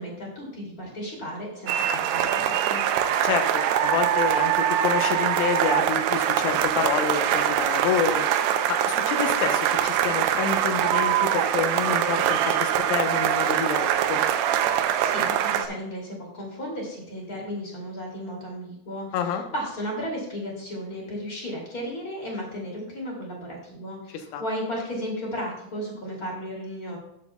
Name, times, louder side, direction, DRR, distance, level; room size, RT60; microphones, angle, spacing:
voice 1, 0.0-2.8 14.8-27.0, equal, 30° left, -2 dB, 1.9 m, -34 dB
sound 1, 1.7-15.7, right 10 dB, 85° right, 2.5 m, -23 dB
voice 2, 3.2-8.3 8.7-14.2 19.1-19.4 24.3-24.4, left 7 dB, 90° left, 6 dB, 3.5 m, -28 dB
12.5 x 8.6 x 2.3 m, 0.81 s
omnidirectional pair, 5.4 m